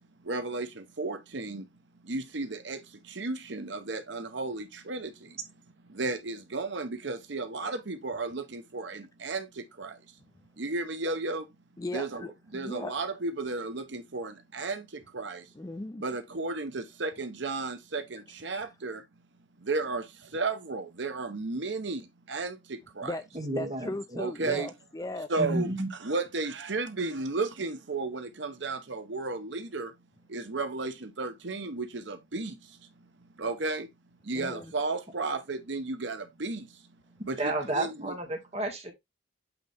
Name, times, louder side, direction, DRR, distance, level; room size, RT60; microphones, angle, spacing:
voice 1, 0.2-1.7 2.0-5.4 5.9-10.1 10.6-11.5 11.9-15.5 16.0-19.0 19.6-23.2 24.2-24.7 25.3-29.9 30.3-32.9 33.4-33.9 34.2-36.8 37.2-38.1, right 3 dB, 65° right, 0.9 m, -34 dB
voice 2, 11.8-12.9 15.5-16.0 18.5-18.7 23.0-25.3 34.3-34.7, left 2 dB, 20° left, 0.4 m, -38 dB
voice 3, 23.3-24.6 25.4-25.9 37.4-38.9, right 1 dB, 35° right, 2.0 m, -32 dB
8.2 x 3.8 x 3.4 m
head